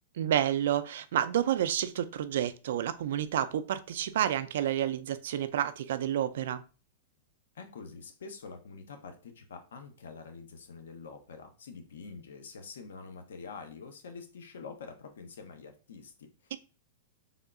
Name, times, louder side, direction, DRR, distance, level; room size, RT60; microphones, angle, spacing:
voice 1, 0.2-6.6, right 10 dB, 70° right, 0.4 m, -29 dB
voice 2, 7.5-16.6, left 5 dB, 85° left, 0.7 m, -46 dB
3.5 x 2.3 x 3.6 m
hypercardioid pair, 140°, 0 cm